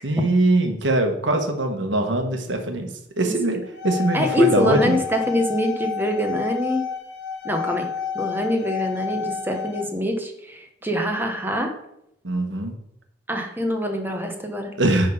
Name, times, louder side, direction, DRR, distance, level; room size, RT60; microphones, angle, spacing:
voice 1, 0.0-2.9 3.2-5.0 12.2-12.8 14.8-15.1, right 1 dB, 80° right, 5 dB, 1.3 m, -22 dB
sound 1, 3.6-9.8, left 8 dB, 65° left, 1.1 m, -30 dB
voice 2, 4.1-6.8 7.4-7.9 8.1-11.7 13.3-14.7, equal, 10° right, 3 dB, 1.1 m, -24 dB
9.7 x 3.8 x 5.5 m, 0.78 s
head